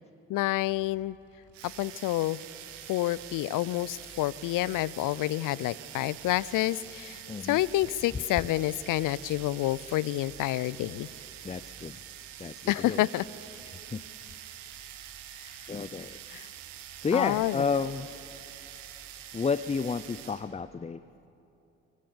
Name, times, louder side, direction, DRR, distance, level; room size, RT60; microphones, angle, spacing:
voice 1, 0.3-1.2 1.8-2.4 2.9-11.1 12.7-13.2 16.3-16.5 17.1-17.6, left 16 dB, 55° left, 22 dB, 0.6 m, -28 dB
sound 1, 0.5-20.5, right 1 dB, 40° right, 4.3 m, -58 dB
sound 2, 1.5-20.5, right 11 dB, 80° right, 1.3 m, -46 dB
voice 2, 7.3-7.6 11.4-12.0 12.4-13.1 13.7-14.0 15.7-16.2 17.0-18.2 19.3-21.0, left 5 dB, 15° left, 14 dB, 0.6 m, -31 dB
24.5 x 24.0 x 7.1 m, 2.8 s
hypercardioid pair, 45°, 37 cm